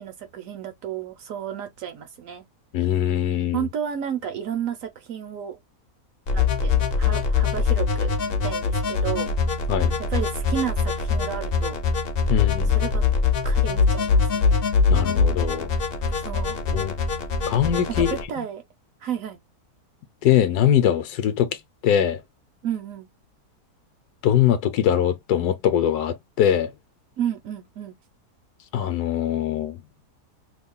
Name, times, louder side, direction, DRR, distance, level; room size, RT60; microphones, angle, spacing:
voice 1, 0.0-2.4 3.5-5.6 6.3-9.3 10.1-11.8 12.7-13.0 13.4-14.7 16.2-16.6 18.0-18.6 19.0-19.4 22.6-23.1 27.2-28.0, right 9 dB, 65° right, 0.9 m, -32 dB
voice 2, 2.7-3.6 9.7-10.0 12.3-12.8 14.9-15.7 16.7-17.0 17.5-18.1 18.4-18.5 20.2-21.6 21.8-22.2 24.2-26.7 28.7-29.8, left 10 dB, 75° left, 1.1 m, -22 dB
sound 1, 6.3-18.2, left 5 dB, 55° left, 0.6 m, -23 dB
2.9 x 2.3 x 3.6 m
omnidirectional pair, 1.7 m